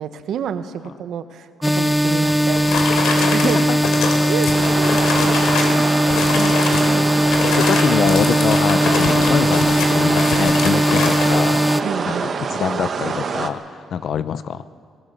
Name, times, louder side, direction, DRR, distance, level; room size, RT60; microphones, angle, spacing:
voice 1, 0.0-2.7 3.1-3.7 4.3-4.5 4.8-4.9 5.3-5.4 6.1-7.1 11.8-12.3, right 8 dB, 70° right, 10 dB, 1.1 m, -29 dB
sound 1, 1.6-11.8, equal, 5° left, 0.7 m, -18 dB
sound 2, 2.3-5.8 6.1-6.9 7.2-11.3, left 4 dB, 85° left, 3.1 m, -24 dB
voice 2, 3.4-3.8 4.9-5.3 5.7-5.9 6.3-6.7 7.5-11.6 12.0-14.6, left 8 dB, 65° left, 14 dB, 0.8 m, -25 dB
sound 3, 4.5-13.5, right 5 dB, 50° right, 1.3 m, -25 dB
22.0 x 18.0 x 6.8 m, 2.1 s
cardioid pair, 90°, 0 cm